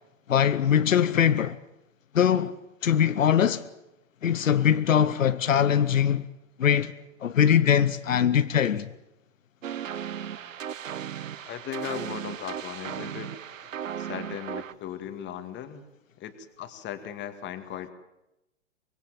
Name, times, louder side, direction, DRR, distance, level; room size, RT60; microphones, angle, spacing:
voice 1, 0.3-1.6 2.1-2.5 2.8-3.6 4.2-6.3 6.6-6.9 7.2-8.9, left 9 dB, 90° left, 1.0 m, -22 dB
sound 1, 9.6-14.7, right 9 dB, 85° right, 1.0 m, -36 dB
voice 2, 11.5-13.3 14.0-15.8 16.2-17.9, left 10 dB, 30° left, 2.2 m, -37 dB
24.5 x 19.5 x 7.6 m
hypercardioid pair, 120°, 38 cm